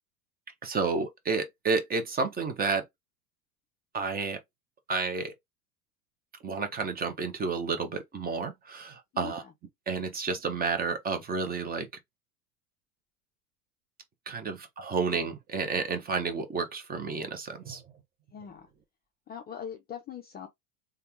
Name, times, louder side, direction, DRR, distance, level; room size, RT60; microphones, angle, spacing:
voice 1, 0.6-2.8 3.9-4.4 4.9-5.3 6.4-9.4 9.9-11.9 14.3-17.8, right 4 dB, 20° right, 0.8 m, -31 dB
voice 2, 9.1-9.5 18.3-18.7 19.3-20.5, left 8 dB, 20° left, 0.5 m, -41 dB
3.4 x 2.3 x 2.8 m
hypercardioid pair, 90°, 45 cm